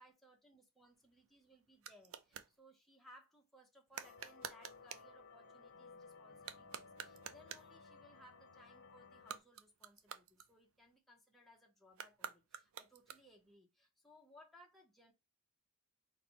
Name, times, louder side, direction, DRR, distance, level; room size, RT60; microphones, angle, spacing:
voice 1, 0.0-15.1, equal, ahead, 0.7 m, -64 dB
sound 1, 0.8-2.5 3.9-5.1 6.3-7.8 9.1-10.9 11.9-13.5, right 8 dB, 65° right, 0.4 m, -50 dB
sound 2, 4.0-9.4, left 4 dB, 55° left, 0.7 m, -58 dB
4.1 x 2.1 x 4.4 m
head